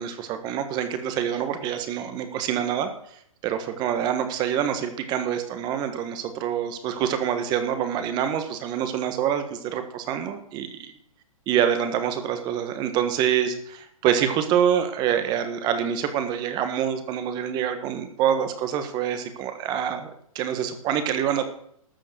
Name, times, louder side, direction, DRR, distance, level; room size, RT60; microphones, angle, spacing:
voice 1, 0.0-10.9 11.5-20.1 20.3-21.4, right 9 dB, 25° right, 9 dB, 1.5 m, -26 dB
13.0 x 7.2 x 8.0 m, 0.69 s
hypercardioid pair, 155°, 18 cm